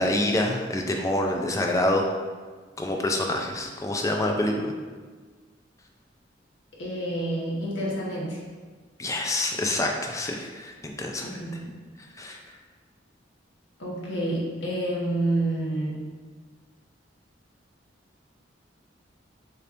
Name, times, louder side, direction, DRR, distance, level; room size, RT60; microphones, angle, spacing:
voice 1, 0.0-2.0 2.8-4.7 9.0-11.3 12.2-12.4, left 1 dB, 15° left, 2 dB, 0.4 m, -26 dB
voice 2, 6.8-8.4 11.2-11.7 13.8-16.0, right 1 dB, 75° left, -5 dB, 1.3 m, -28 dB
6.5 x 2.9 x 2.6 m, 1.5 s
head